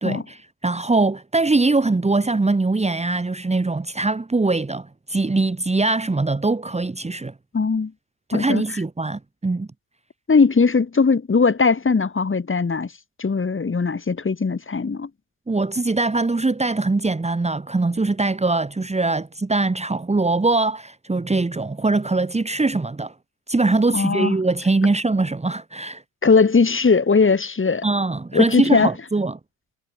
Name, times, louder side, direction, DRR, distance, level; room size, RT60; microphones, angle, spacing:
voice 1, 0.0-7.3 8.3-9.7 15.5-23.1 23.5-26.0 27.8-29.4, right 3 dB, 15° right, 2.4 m, -22 dB
voice 2, 7.5-7.9 8.3-8.6 10.3-12.9 13.2-15.1 23.9-24.3 26.2-27.8 28.3-28.9, left 4 dB, 25° left, 7.9 m, -19 dB
supercardioid pair, 80°, 44 cm